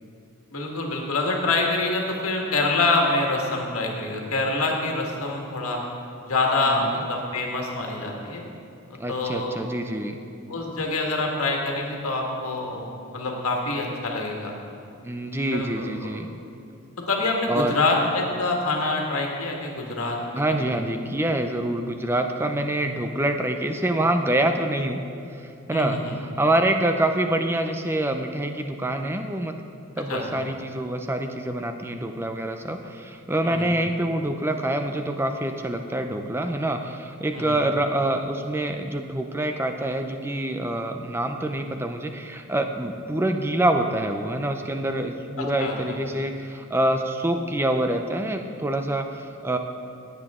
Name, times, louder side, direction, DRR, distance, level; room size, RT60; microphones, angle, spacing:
voice 1, 0.5-5.8 6.3-8.4 9.1-9.5 10.5-14.5 15.5-16.1 17.1-20.6 25.7-26.1 30.1-30.2 33.4-33.7 37.3-37.6 45.4-46.0, left 2 dB, 75° left, 0 dB, 1.7 m, -26 dB
voice 2, 6.7-7.0 9.0-10.2 15.0-16.3 17.5-17.8 20.3-25.0 25.7-29.6 29.9-49.6, right 1 dB, 10° right, 5 dB, 0.5 m, -26 dB
17.0 x 8.1 x 3.7 m, 2.6 s
head